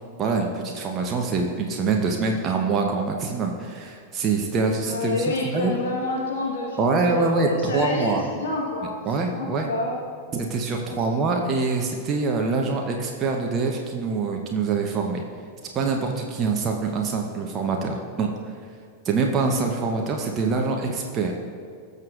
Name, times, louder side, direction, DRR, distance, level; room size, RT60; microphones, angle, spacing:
voice 1, 0.2-5.2 5.5-5.7 6.8-8.2 9.1-9.7 10.3-15.2 15.7-18.3 19.0-21.3, right 4 dB, 30° right, 1 dB, 0.9 m, -24 dB
voice 2, 4.8-10.0 10.8-11.4, left 2 dB, 60° left, -3 dB, 1.4 m, -29 dB
18.0 x 6.7 x 2.5 m, 2.2 s
figure-of-eight pair, 90°, 0 cm